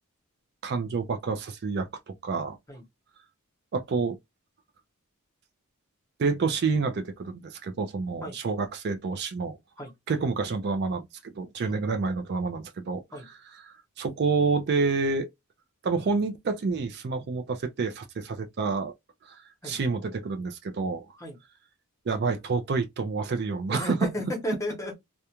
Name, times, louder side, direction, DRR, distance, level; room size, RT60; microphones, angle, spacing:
voice 1, 0.6-2.6 3.7-4.2 6.2-9.6 10.1-15.3 15.8-18.9 19.3-21.1 22.1-24.1, right 4 dB, 45° right, 0.4 m, -28 dB
voice 2, 23.7-24.9, equal, 15° left, 0.9 m, -33 dB
2.4 x 2.1 x 2.8 m
head